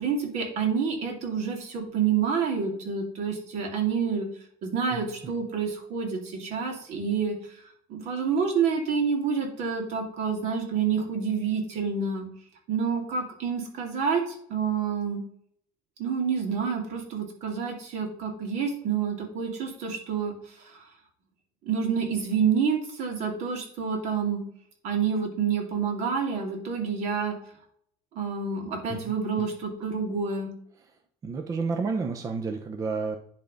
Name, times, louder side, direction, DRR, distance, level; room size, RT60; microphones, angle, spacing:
voice 1, 0.0-4.3 4.6-7.5 7.9-12.3 12.7-15.2 16.0-20.9 21.6-24.4 24.8-27.4 28.1-30.5, right 6 dB, 60° right, 3 dB, 2.5 m, -28 dB
voice 2, 31.2-33.2, right 4 dB, 25° right, 5 dB, 0.7 m, -30 dB
10.5 x 3.5 x 5.2 m, 0.64 s
cardioid pair, 145°, 13 cm